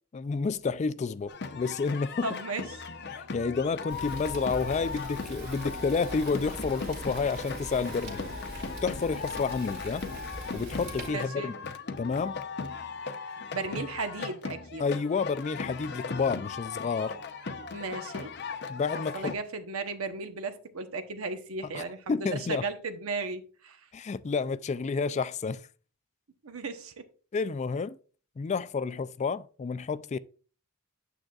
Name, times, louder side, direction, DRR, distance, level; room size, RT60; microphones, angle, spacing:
voice 1, 0.1-2.4 3.1-8.3 8.8-10.0 10.5-12.4 14.8-17.1 18.7-19.4 21.7-22.7 23.9-25.6 27.3-28.0 28.4-30.2, left 4 dB, 35° left, 0.3 m, -30 dB
sound 1, 1.3-19.4, left 5 dB, 55° left, 0.7 m, -38 dB
voice 2, 2.2-2.6 11.1-11.5 13.5-14.8 17.7-18.3 19.1-23.8 26.4-27.0, right 3 dB, 90° right, 0.9 m, -35 dB
Fire, 3.9-11.1, right 1 dB, 55° right, 2.0 m, -41 dB
8.9 x 7.6 x 2.4 m
head